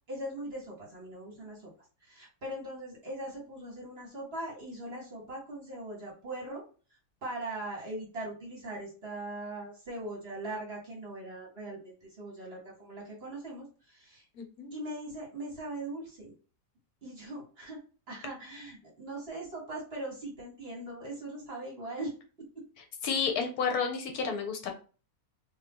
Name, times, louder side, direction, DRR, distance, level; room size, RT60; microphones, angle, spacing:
voice 1, 0.1-1.7 2.0-6.6 7.2-14.2 14.7-16.3 17.0-17.8 18.1-22.6, right 1 dB, 40° right, -2 dB, 1.3 m, -40 dB
voice 2, 14.4-14.7 23.0-24.7, left 5 dB, 70° left, 4 dB, 1.1 m, -31 dB
2.8 x 2.7 x 3.5 m, 0.36 s
omnidirectional pair, 1.7 m